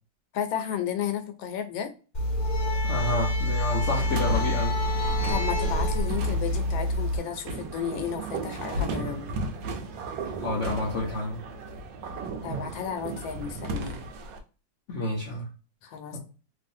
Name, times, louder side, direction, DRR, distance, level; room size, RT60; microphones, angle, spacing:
voice 1, 0.3-1.9 5.3-9.3 12.4-14.0 15.8-16.2, left 8 dB, 85° left, 1.4 m, -33 dB
sound 1, 2.1-7.2, left 1 dB, 30° left, 1.0 m, -26 dB
voice 2, 2.8-4.8 10.4-11.4 14.9-15.5 16.1-16.2, left 2 dB, 70° left, 0.7 m, -29 dB
sound 2, 3.8-14.4, right 2 dB, 75° right, 1.3 m, -35 dB
3.2 x 2.4 x 2.6 m
omnidirectional pair, 2.1 m